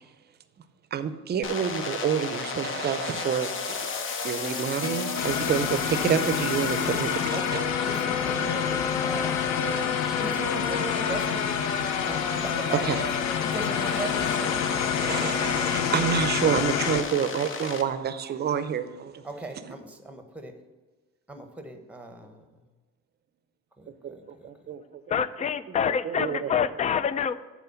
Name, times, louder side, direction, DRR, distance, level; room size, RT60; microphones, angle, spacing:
voice 1, 0.9-3.9 4.2-7.6 9.5-9.6 12.8-13.1 15.0-19.2 24.0-24.8 25.9-26.5, right 8 dB, 35° right, 0.6 m, -28 dB
sound 1, 1.4-17.8, left 4 dB, 45° left, 0.9 m, -32 dB
sound 2, 4.8-7.2, left 5 dB, 90° left, 1.3 m, -41 dB
sound 3, 5.1-17.0, left 8 dB, 70° left, 0.7 m, -28 dB
voice 2, 7.3-8.8 9.1-13.1 13.5-14.8 19.2-20.5 21.3-22.4 23.8-24.5, right 2 dB, 5° right, 1.0 m, -39 dB
voice 3, 25.1-27.3, left 7 dB, 25° left, 0.3 m, -26 dB
8.1 x 4.4 x 6.9 m
cardioid pair, 125°, 29 cm